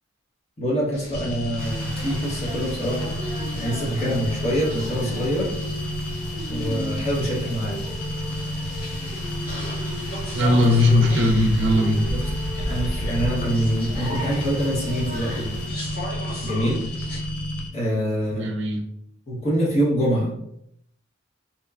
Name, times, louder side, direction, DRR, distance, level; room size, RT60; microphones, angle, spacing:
voice 1, 0.6-3.1 3.5-5.5 6.5-7.8 12.1-12.2 12.7-15.6 16.4-16.8 17.7-18.5 19.3-20.3, equal, 35° left, -5 dB, 0.8 m, -25 dB
sound 1, 0.9-17.2, equal, 55° left, 1.4 m, -35 dB
sound 2, 1.1-17.7, equal, 80° left, 0.4 m, -31 dB
Rain, 1.6-15.7, equal, 10° right, 1.0 m, -38 dB
voice 2, 10.3-12.1 18.3-18.8, left 1 dB, 60° right, 2 dB, 0.4 m, -19 dB
2.9 x 2.1 x 2.3 m, 0.76 s
head